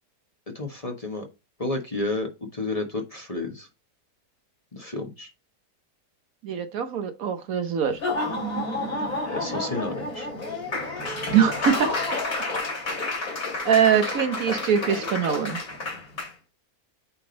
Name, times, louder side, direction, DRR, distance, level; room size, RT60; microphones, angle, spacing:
voice 1, 0.5-1.3 1.6-3.7 4.7-5.3 9.3-10.3, left 2 dB, 25° left, 1.3 m, -31 dB
voice 2, 6.4-8.0 11.3-11.9 13.6-15.6, right 8 dB, 65° right, 1.2 m, -22 dB
Laughter / Applause, 7.9-16.3, left 2 dB, 55° left, 3.4 m, -30 dB
8.6 x 3.7 x 3.9 m
omnidirectional pair, 1.7 m